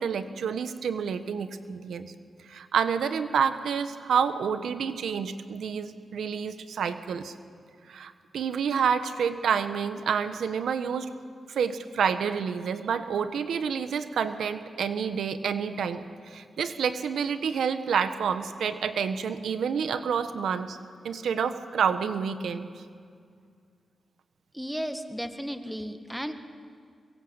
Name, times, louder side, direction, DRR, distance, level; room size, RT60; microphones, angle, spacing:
voice 1, 0.0-2.1 2.5-7.3 7.9-11.1 11.5-20.8 21.0-22.7, right 7 dB, 85° right, 10 dB, 1.2 m, -28 dB
voice 2, 24.5-26.3, equal, ahead, 8 dB, 1.7 m, -34 dB
23.5 x 22.5 x 8.1 m, 2.2 s
cardioid pair, 85°, 0 cm